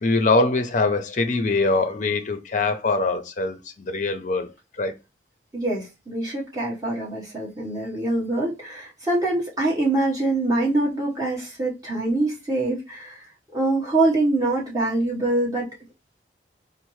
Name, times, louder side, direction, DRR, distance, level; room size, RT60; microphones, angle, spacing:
voice 1, 0.0-4.5 4.8-4.9, left 3 dB, 45° left, 0.5 m, -23 dB
voice 2, 5.5-13.2 13.5-15.7, right 2 dB, 20° right, 1.3 m, -24 dB
4.2 x 2.0 x 3.1 m
head